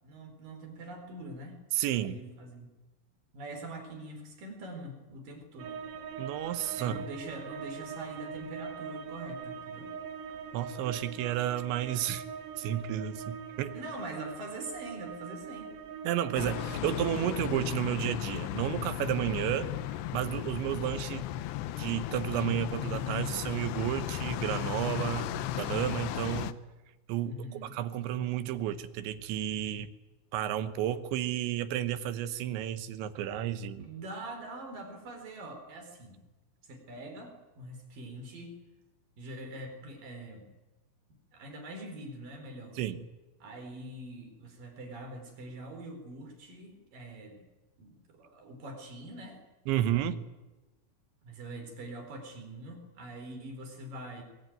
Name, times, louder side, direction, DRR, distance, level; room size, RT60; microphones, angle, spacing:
voice 1, 0.0-1.6 1.9-2.7 3.3-5.8 6.8-9.9 13.7-15.7 27.3-27.8 33.8-36.2 36.6-38.6 39.2-40.5 41.3-42.8 43.4-47.5 47.8-49.4 51.2-54.2, right 1 dB, 45° right, 5 dB, 5.4 m, -44 dB
voice 2, 1.7-2.2 6.2-7.0 10.5-12.2 12.6-13.8 16.0-19.7 20.1-21.3 21.8-26.6 27.1-29.9 30.3-33.9 42.8-43.0 49.7-50.3, right 11 dB, 70° right, 11 dB, 3.3 m, -32 dB
sound 1, 5.6-17.1, right 6 dB, 90° right, 4.4 m, -42 dB
sound 2, 16.3-26.5, left 12 dB, 75° left, 2.6 m, -35 dB
23.0 x 21.5 x 9.3 m, 1.1 s
omnidirectional pair, 5.8 m